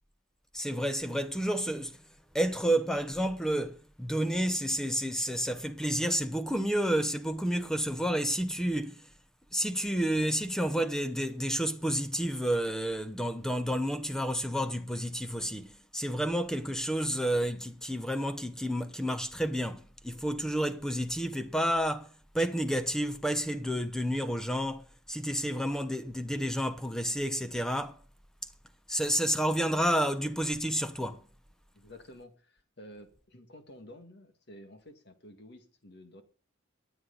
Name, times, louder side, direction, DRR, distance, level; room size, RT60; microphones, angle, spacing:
voice 1, 0.5-2.0 2.3-9.1 9.5-28.0 28.9-31.2, equal, 5° left, 0.8 m, -30 dB
voice 2, 31.7-36.2, left 1 dB, 55° left, 1.9 m, -51 dB
22.5 x 8.0 x 4.0 m
head